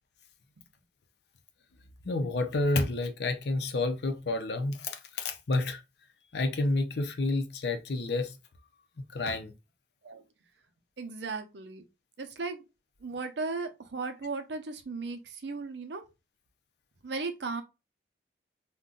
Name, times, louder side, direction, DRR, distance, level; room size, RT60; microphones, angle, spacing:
voice 1, 2.0-5.8 6.3-8.4 9.0-9.5, left 2 dB, 65° left, 0.6 m, -30 dB
voice 2, 11.0-11.8 12.2-12.6 13.0-16.0 17.0-17.6, right 4 dB, 75° right, 0.6 m, -36 dB
2.5 x 2.2 x 3.8 m
head